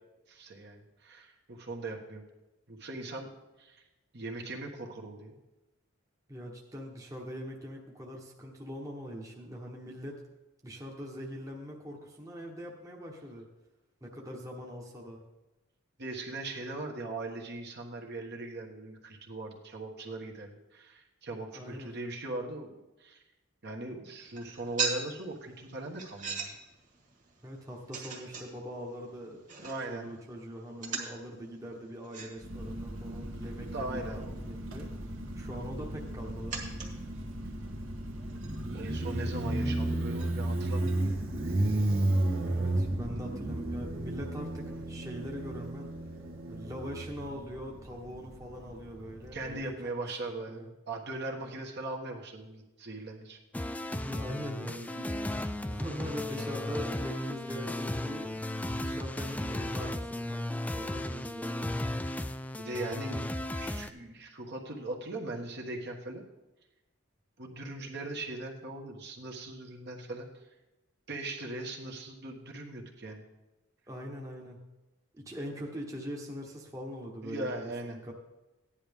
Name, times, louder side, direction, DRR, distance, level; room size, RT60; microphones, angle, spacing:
voice 1, 0.3-2.2 2.7-3.3 3.6-3.8 4.1-5.4 16.0-23.2 23.6-26.5 29.6-30.1 33.2-33.3 33.7-34.3 38.7-41.2 44.7-44.8 49.3-53.4 62.6-66.2 67.4-70.3 71.1-73.3 77.2-78.0, right 2 dB, 55° right, 0 dB, 1.4 m, -40 dB
voice 2, 6.3-10.2 10.6-13.5 14.0-15.2 21.6-21.9 27.4-29.4 29.9-34.9 35.3-36.6 42.4-45.9 46.5-50.7 51.4-51.5 53.9-58.4 58.7-61.7 73.9-74.6 75.1-78.1, equal, 15° right, -1 dB, 1.1 m, -42 dB
sound 1, 24.2-40.9, right 4 dB, 35° right, 1.8 m, -43 dB
Motorcycle, 32.4-49.6, right 1 dB, 70° right, 1.4 m, -34 dB
sound 2, 53.5-63.9, left 1 dB, 5° left, 0.3 m, -35 dB
15.0 x 10.0 x 3.6 m, 1.0 s
head